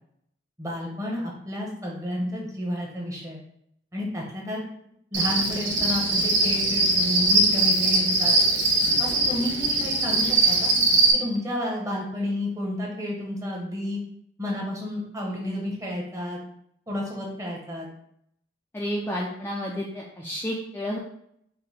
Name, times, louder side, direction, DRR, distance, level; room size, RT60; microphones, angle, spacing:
voice 1, 0.6-3.4 3.9-4.6 5.1-8.4 9.0-10.7 11.1-14.0 14.4-16.4 16.9-17.9, left 1 dB, 15° right, -2 dB, 1.0 m, -31 dB
Cricket, 5.1-11.1, right 2 dB, 75° right, 0.8 m, -21 dB
voice 2, 18.7-21.0, equal, 10° left, -3 dB, 0.4 m, -31 dB
5.2 x 2.1 x 4.1 m, 0.71 s
head